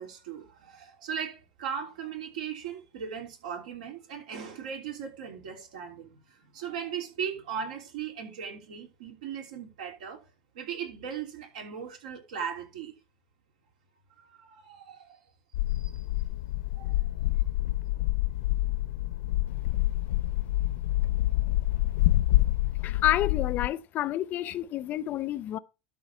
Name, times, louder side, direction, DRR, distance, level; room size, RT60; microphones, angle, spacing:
voice 1, 0.0-10.2 10.5-13.0 14.2-15.2 15.7-16.0 16.8-17.3, right 7 dB, 80° right, 3.2 m, -38 dB
sound 1, 15.5-23.7, left 16 dB, 80° left, 0.7 m, -27 dB
voice 2, 22.8-25.6, left 13 dB, 45° left, 0.6 m, -29 dB
12.5 x 4.1 x 5.5 m
hypercardioid pair, 105°, 4 cm